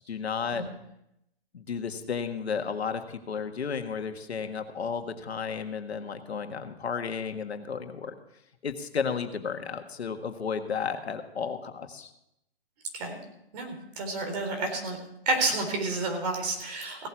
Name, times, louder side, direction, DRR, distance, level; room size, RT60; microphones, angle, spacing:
voice 1, 0.1-0.6 1.5-8.1 8.6-12.1, left 6 dB, 85° left, 6 dB, 1.7 m, -33 dB
voice 2, 13.5-15.0 15.3-17.1, right 3 dB, 40° right, 3 dB, 4.1 m, -30 dB
17.0 x 8.2 x 6.1 m, 0.82 s
hypercardioid pair, 145°, 31 cm